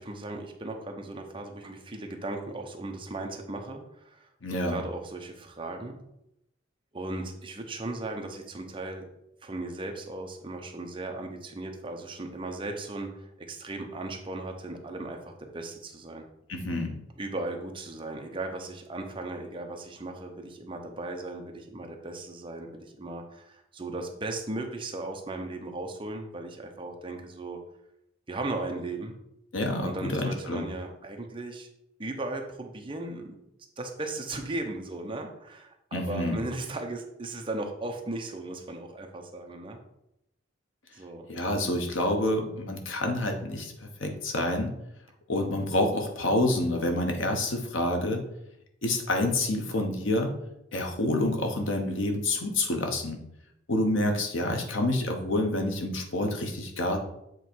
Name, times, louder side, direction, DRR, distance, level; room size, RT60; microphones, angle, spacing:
voice 1, 0.0-6.0 6.9-9.1 9.4-16.2 17.2-27.6 28.3-29.2 29.8-31.7 32.0-33.4 33.8-39.8 40.9-41.3, right 2 dB, 25° right, 3 dB, 0.8 m, -37 dB
voice 2, 4.4-4.8 16.5-16.9 29.5-30.7 35.9-36.4 41.3-43.7 44.0-44.7 45.3-48.2 48.8-50.3 50.7-53.2 53.7-57.0, left 1 dB, 75° left, 3 dB, 1.1 m, -28 dB
7.7 x 3.1 x 4.6 m, 0.81 s
head